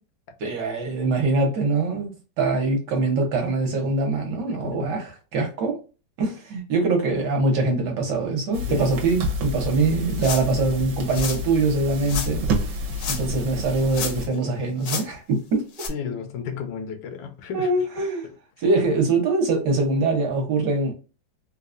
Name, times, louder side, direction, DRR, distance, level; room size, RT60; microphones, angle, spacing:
voice 1, 0.4-5.8 6.2-12.5 13.1-15.7 17.5-18.3 18.6-20.9, right 3 dB, 65° right, 1.5 m, -23 dB
voice 2, 4.5-5.0 8.7-9.0 15.9-17.7, left 6 dB, 80° left, 1.4 m, -33 dB
sound 1, 8.5-14.3, left 1 dB, 80° right, 1.5 m, -29 dB
sound 2, 10.2-10.6 11.1-11.4 12.1-12.3 12.9-13.4 13.7-14.4 14.8-15.1 15.7-15.9, left 6 dB, 65° left, 1.0 m, -31 dB
3.8 x 2.3 x 2.5 m
omnidirectional pair, 2.1 m